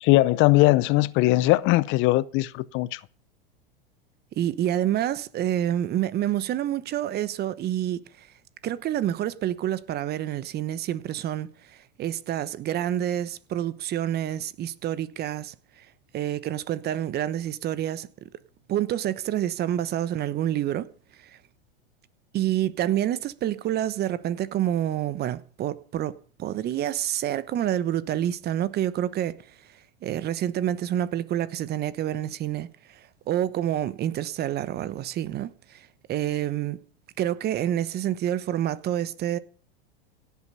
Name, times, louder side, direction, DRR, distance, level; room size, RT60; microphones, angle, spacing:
voice 1, 0.0-3.0, left 18 dB, 40° left, 0.6 m, -20 dB
voice 2, 4.4-8.3 8.6-15.5 16.1-18.1 18.7-20.9 22.3-29.4 30.0-36.8 37.2-39.4, right 11 dB, 35° right, 1.0 m, -28 dB
17.0 x 8.5 x 5.5 m
hypercardioid pair, 110°, 29 cm